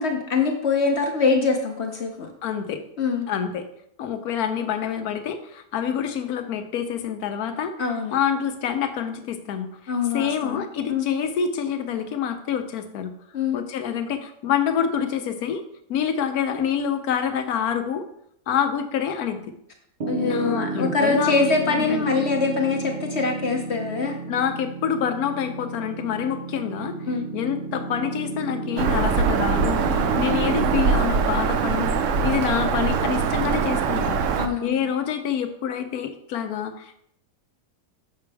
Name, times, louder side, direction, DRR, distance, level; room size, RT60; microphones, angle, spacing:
voice 1, 0.0-2.3 3.0-3.3 7.8-8.2 9.9-11.0 13.3-13.6 20.1-24.2 27.1-27.3 34.4-34.9, left 4 dB, 50° left, 3 dB, 0.9 m, -24 dB
voice 2, 2.4-2.8 3.3-3.7 4.0-7.7 8.1-9.7 10.1-13.1 13.5-15.6 15.9-18.1 18.5-19.5 20.2-22.1 24.3-27.0 27.3-34.2 34.6-37.0, left 8 dB, 70° left, 8 dB, 1.2 m, -27 dB
Piano, 20.0-31.0, right 3 dB, 90° right, 0.4 m, -32 dB
Bird vocalization bird call bird song, 28.8-34.5, right 5 dB, 70° right, 0.8 m, -23 dB
6.9 x 5.8 x 3.3 m, 0.71 s
omnidirectional pair, 1.7 m